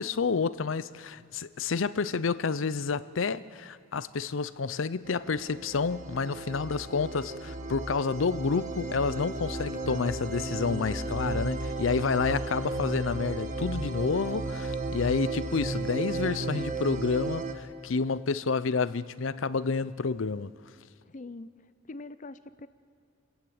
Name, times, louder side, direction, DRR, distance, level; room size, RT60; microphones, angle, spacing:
voice 1, 0.0-20.5, left 4 dB, 85° left, 0.6 m, -29 dB
sound 1, 5.0-17.5, right 2 dB, 40° right, 1.4 m, -34 dB
voice 2, 21.0-21.5 21.9-22.7, left 2 dB, 40° left, 0.6 m, -43 dB
28.5 x 14.5 x 8.8 m
head